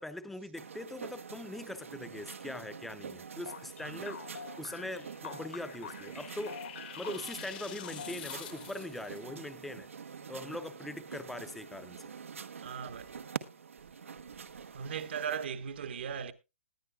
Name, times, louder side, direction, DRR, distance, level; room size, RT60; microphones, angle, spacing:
voice 1, 0.0-4.2 4.6-6.6 7.0-9.9 10.3-12.0, left 1 dB, ahead, 0.7 m, -42 dB
sound 1, 0.5-15.5, right 6 dB, 85° right, 1.1 m, -46 dB
sound 2, 3.5-8.8, left 7 dB, 75° left, 2.4 m, -47 dB
sound 3, 5.0-9.2, left 13 dB, 40° left, 1.1 m, -48 dB
voice 2, 12.6-13.1 14.7-16.3, right 7 dB, 55° right, 1.1 m, -38 dB
20.0 x 10.0 x 2.3 m
hypercardioid pair, 155°, 7 cm